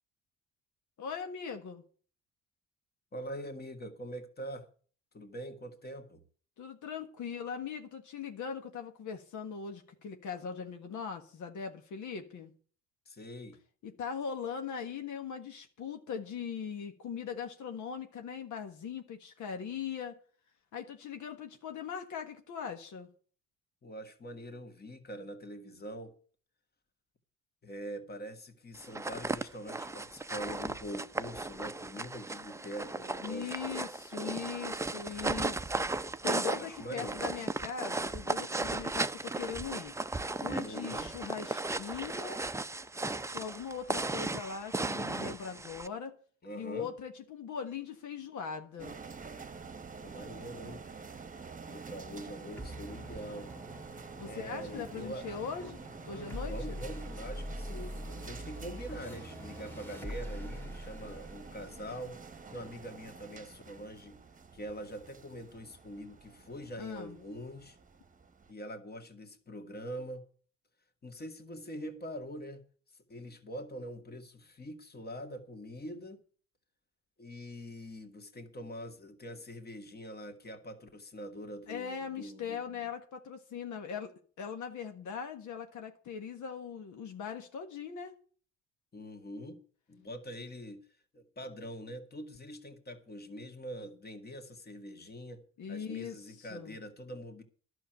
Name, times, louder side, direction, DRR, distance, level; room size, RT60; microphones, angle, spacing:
voice 1, 1.0-1.8 6.6-12.5 13.8-20.2 20.7-23.1 33.2-39.9 40.4-42.4 43.3-46.2 46.5-49.0 54.2-55.8 56.1-56.8 66.8-67.2 81.7-88.1 95.6-96.8, left 7 dB, 75° left, 1.7 m, -40 dB
voice 2, 3.1-4.7 5.1-6.2 13.1-13.6 23.8-26.1 27.6-33.6 36.5-37.3 40.6-41.1 46.4-46.9 50.0-50.8 51.7-53.6 54.2-55.4 56.1-62.2 62.5-64.2 64.5-67.8 68.5-70.2 71.0-72.6 72.9-76.2 77.2-82.9 88.9-90.9 91.1-95.4 95.7-97.4, equal, 30° left, 2.1 m, -44 dB
sound 1, 28.8-45.9, right 2 dB, 10° right, 0.6 m, -36 dB
sound 2, 48.8-68.5, right 5 dB, 25° right, 1.2 m, -48 dB
sound 3, 52.6-63.4, equal, 5° left, 1.9 m, -44 dB
11.5 x 6.4 x 9.1 m
cardioid pair, 90°, 30 cm